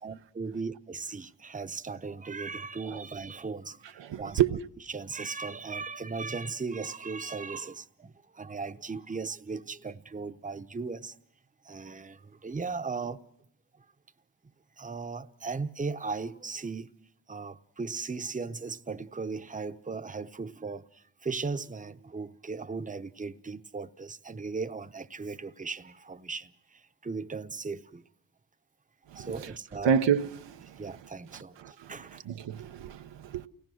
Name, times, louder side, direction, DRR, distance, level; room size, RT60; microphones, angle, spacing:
voice 1, 0.0-4.4 4.9-11.2 11.6-13.2 14.8-16.9 17.3-28.0 29.1-29.9 30.8-32.2, right 4 dB, 20° right, 0.8 m, -37 dB
voice 2, 4.0-4.6 29.1-29.4 29.8-30.8 31.3-33.5, right 8 dB, 90° right, 0.8 m, -29 dB
28.5 x 17.5 x 6.3 m
cardioid pair, 55°, 42 cm